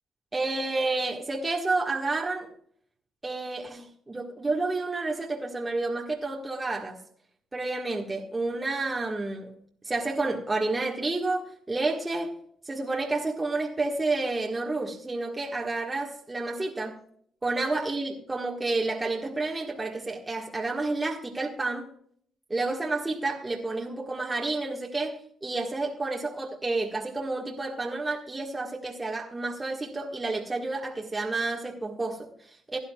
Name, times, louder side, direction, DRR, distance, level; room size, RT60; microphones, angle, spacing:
voice 1, 0.3-2.5 3.2-7.0 7.5-9.6 9.8-12.3 12.6-17.0 17.4-21.9 22.5-32.8, right 3 dB, 20° right, 1.6 m, -30 dB
16.0 x 10.5 x 2.3 m
cardioid pair, 90°, 0 cm